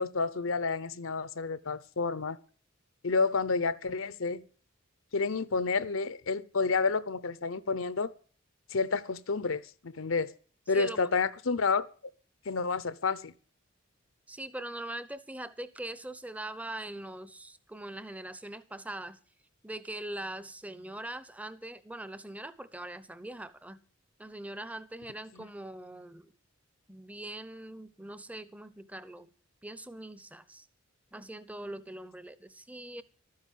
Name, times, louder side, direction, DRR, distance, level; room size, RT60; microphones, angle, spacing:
voice 1, 0.0-2.4 3.0-4.5 5.1-8.1 8.7-10.3 10.7-11.9 12.5-13.3, left 4 dB, 75° left, 0.8 m, -30 dB
voice 2, 10.7-11.0 14.3-19.2 19.6-23.8 24.2-26.3 26.9-29.3 29.6-30.7 31.1-33.0, right 1 dB, 5° right, 0.7 m, -42 dB
12.5 x 9.6 x 7.4 m
head